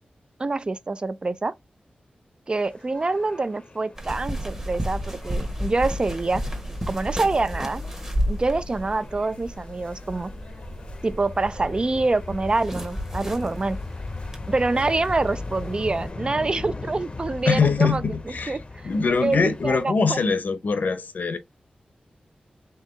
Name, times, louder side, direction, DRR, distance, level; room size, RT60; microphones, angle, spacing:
voice 1, 0.4-1.5 2.5-6.4 6.9-7.8 8.3-10.3 11.0-13.8 14.5-18.0 18.5-18.9 19.2-20.2, right 3 dB, 30° right, 0.4 m, -26 dB
sound 1, 2.5-19.9, left 3 dB, 35° left, 0.7 m, -39 dB
sound 2, 4.0-16.1, equal, 15° right, 1.2 m, -33 dB
voice 2, 17.5-18.6 18.8-21.4, left 5 dB, 70° left, 0.8 m, -23 dB
4.6 x 3.4 x 3.1 m
wide cardioid pair, 120°, 3 cm